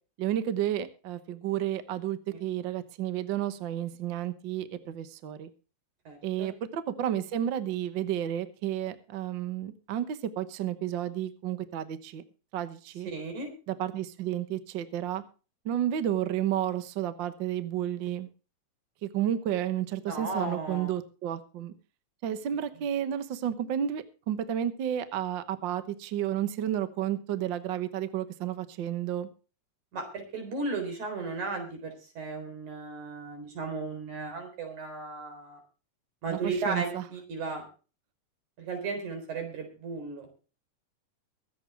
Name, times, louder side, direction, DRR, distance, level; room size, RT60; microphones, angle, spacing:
voice 1, 0.2-5.5 6.2-12.2 12.5-13.1 13.7-15.2 15.6-18.3 19.0-21.7 22.2-29.3 36.3-37.0, right 11 dB, 60° right, 11 dB, 1.3 m, -31 dB
voice 2, 6.1-6.5 13.1-13.5 20.1-20.9 29.9-35.6 36.2-37.6 38.6-40.3, right 3 dB, 85° right, 5 dB, 5.5 m, -35 dB
23.0 x 8.4 x 3.4 m, 0.35 s
omnidirectional pair, 3.3 m